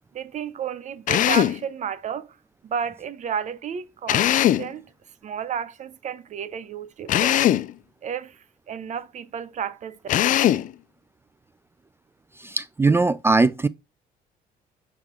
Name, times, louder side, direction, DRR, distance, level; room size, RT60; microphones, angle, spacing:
voice 1, 0.1-2.4 2.6-4.9 5.2-7.4 8.0-10.0, right 7 dB, 45° right, 0.7 m, -32 dB
Drill, 1.1-1.6 4.1-4.7 7.1-7.7 10.1-10.7, left 12 dB, 50° left, 0.4 m, -20 dB
voice 2, 12.4-13.7, right 3 dB, 15° right, 0.3 m, -20 dB
5.9 x 5.6 x 3.7 m
cardioid pair, 110°, 17 cm